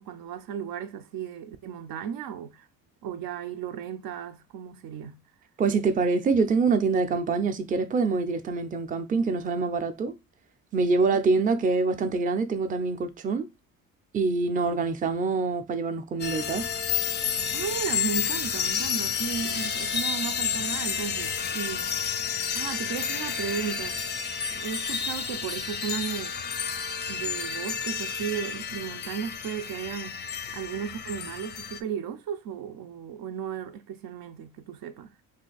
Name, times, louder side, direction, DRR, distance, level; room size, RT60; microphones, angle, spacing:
voice 1, 0.0-2.7 3.0-5.2 17.5-21.9 22.6-24.0 24.5-26.4 27.1-30.2 30.5-35.1, right 8 dB, 70° right, 0.6 m, -35 dB
voice 2, 5.6-10.2 10.7-13.5 14.1-16.7, right 4 dB, 25° right, 0.5 m, -25 dB
sound 1, 16.2-31.8, left 7 dB, 30° left, 0.4 m, -30 dB
2.8 x 2.6 x 3.9 m
cardioid pair, 90°, 36 cm